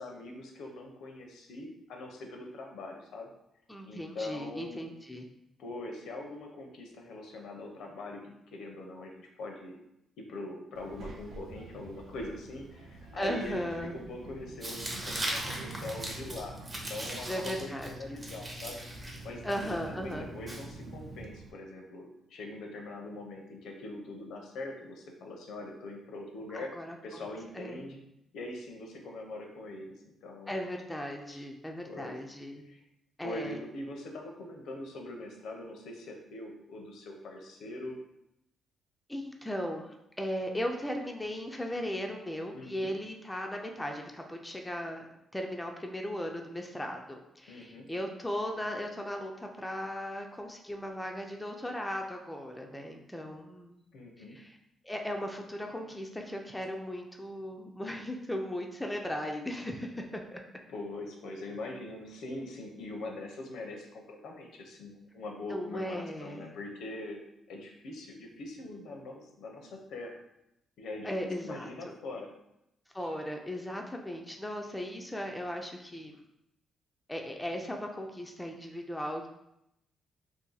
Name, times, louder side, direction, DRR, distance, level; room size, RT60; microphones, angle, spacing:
voice 1, 0.0-3.3 3.9-4.9 5.6-9.8 10.2-18.8 19.2-26.7 27.0-28.0 28.3-30.7 31.3-31.4 31.8-32.2 32.6-32.8 33.2-38.0 42.5-42.9 47.5-47.9 53.9-54.4 60.7-67.2 67.5-70.2 70.8-72.3 73.0-73.1, left 2 dB, 80° left, 2 dB, 0.6 m, -42 dB
voice 2, 3.7-5.3 13.1-13.9 17.3-17.9 19.4-20.3 26.5-27.2 27.5-27.8 30.5-32.6 33.2-33.6 39.1-45.1 45.3-53.8 54.3-54.6 54.8-60.4 65.5-66.5 71.0-71.9 72.9-76.1 77.1-79.3, equal, 10° left, 2 dB, 0.4 m, -37 dB
Child speech kid speaking, 10.7-21.5, right 3 dB, 75° right, 0.4 m, -47 dB
Tearing, 14.6-21.2, right 1 dB, 20° right, 0.7 m, -40 dB
2.7 x 2.5 x 3.9 m, 0.83 s
cardioid pair, 115°, 0 cm